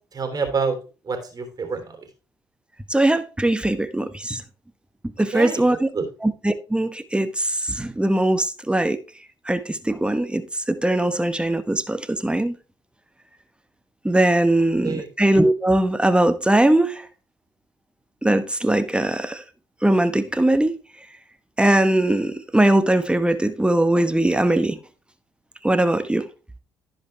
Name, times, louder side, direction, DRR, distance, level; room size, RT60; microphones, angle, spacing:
voice 1, 0.1-0.8 1.0-2.0 5.3-5.6 5.9-6.1 14.8-15.1, right 4 dB, 40° right, 3.1 m, -26 dB
voice 2, 2.9-4.4 5.2-5.9 6.2-9.0 9.4-12.6 14.0-17.1 18.2-19.4 19.8-20.7 21.6-24.8 25.6-26.3, right 1 dB, 10° right, 1.1 m, -20 dB
15.5 x 5.2 x 3.2 m
hypercardioid pair, 50°, 10 cm